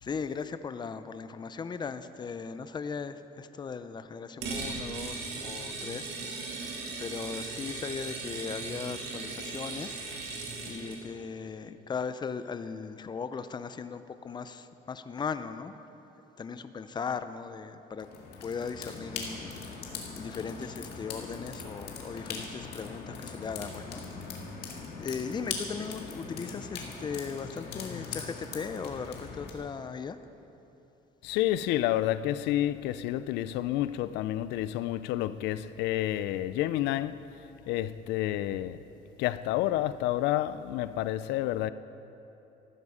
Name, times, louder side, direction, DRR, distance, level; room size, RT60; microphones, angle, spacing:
voice 1, 0.0-6.7 7.0-10.0 10.6-15.7 16.4-18.1 18.4-24.0 24.4-30.2, left 5 dB, 25° left, 0.6 m, -38 dB
sound 1, 4.4-11.0, right 3 dB, 85° right, 2.2 m, -38 dB
sound 2, 18.0-29.5, left 5 dB, 70° left, 1.9 m, -40 dB
voice 2, 31.2-37.2 37.7-38.8 39.2-41.7, left 13 dB, 90° left, 0.4 m, -29 dB
14.0 x 12.5 x 5.0 m
cardioid pair, 110°, 17 cm